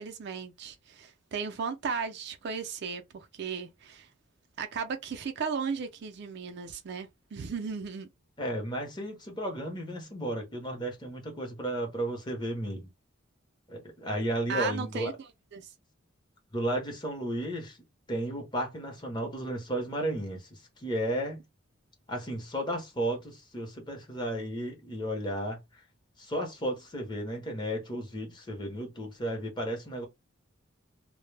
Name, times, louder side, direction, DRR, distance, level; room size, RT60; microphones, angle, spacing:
voice 1, 0.0-4.1 4.6-8.1 14.5-15.1 15.5-15.7, right 5 dB, 55° right, 0.4 m, -35 dB
voice 2, 8.4-12.9 13.7-15.2 16.5-17.8 18.1-21.4 22.1-25.8 26.2-30.1, right 1 dB, 20° left, 0.7 m, -33 dB
2.1 x 2.0 x 3.2 m
head